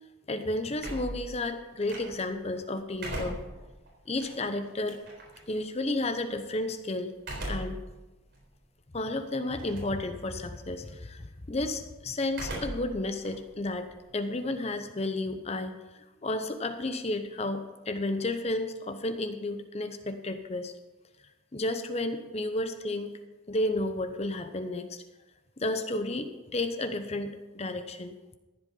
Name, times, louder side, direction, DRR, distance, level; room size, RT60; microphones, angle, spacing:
voice 1, 0.3-3.4 4.1-5.0 5.5-7.1 7.5-7.8 8.9-20.7 21.5-23.2 23.5-25.0 25.6-28.2, left 2 dB, 35° left, 8 dB, 0.8 m, -32 dB
sound 1, 0.8-2.4 2.8-5.4 7.2-7.9 8.4-8.5 9.5-10.0 10.3-10.7 12.3-13.0 13.2-14.7, right 1 dB, 60° right, 3.9 m, -39 dB
14.0 x 7.9 x 5.5 m, 1.1 s
head